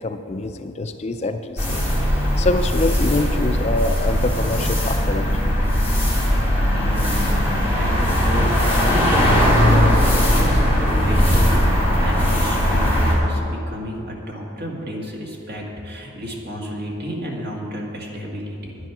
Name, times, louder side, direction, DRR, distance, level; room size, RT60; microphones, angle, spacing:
voice 1, 0.0-5.8 6.7-6.9, left 2 dB, 30° left, 7 dB, 0.4 m, -26 dB
sound 1, 1.6-13.1, equal, 10° right, 2.4 m, -19 dB
voice 2, 6.7-18.8, equal, 45° right, -2 dB, 1.9 m, -31 dB
10.5 x 10.0 x 6.0 m, 2.9 s
head